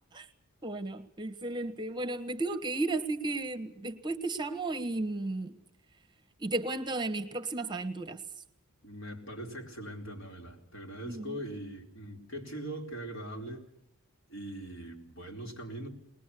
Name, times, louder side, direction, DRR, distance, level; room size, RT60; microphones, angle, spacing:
voice 1, 0.6-5.6 6.4-8.2 11.0-11.4, right 2 dB, 20° right, 1.2 m, -34 dB
voice 2, 8.8-13.6 14.3-15.9, right 1 dB, 55° left, 4.5 m, -41 dB
21.0 x 20.5 x 8.4 m
head